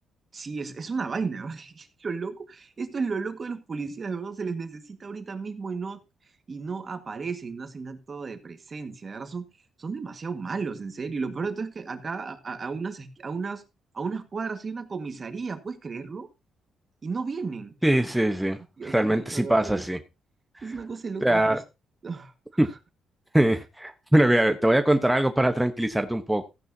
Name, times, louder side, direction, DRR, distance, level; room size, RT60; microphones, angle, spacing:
voice 1, 0.3-6.0 6.5-9.5 9.8-13.6 13.9-16.3 17.0-17.7 18.8-19.8 20.6-21.6 22.0-22.3 22.6-22.7, right 4 dB, 35° right, 8 dB, 1.6 m, -33 dB
voice 2, 17.8-18.6 18.8-20.0 20.6-20.7 21.2-21.6 22.6-22.7 23.3-26.4, right 1 dB, 5° right, 6 dB, 1.0 m, -22 dB
14.5 x 10.5 x 2.8 m, 0.26 s
cardioid pair, 90°, 0 cm